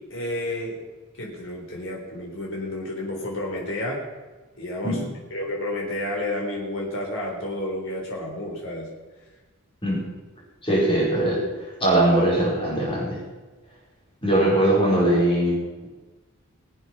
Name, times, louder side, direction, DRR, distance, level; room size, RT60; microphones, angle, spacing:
voice 1, 0.1-0.8 1.2-4.0 4.5-5.0 5.3-8.9, left 1 dB, 60° left, -2 dB, 4.0 m, -30 dB
voice 2, 10.6-11.5 11.8-13.2 14.2-15.6, right 1 dB, 25° left, -4 dB, 5.0 m, -21 dB
22.0 x 8.1 x 6.1 m, 1.2 s
head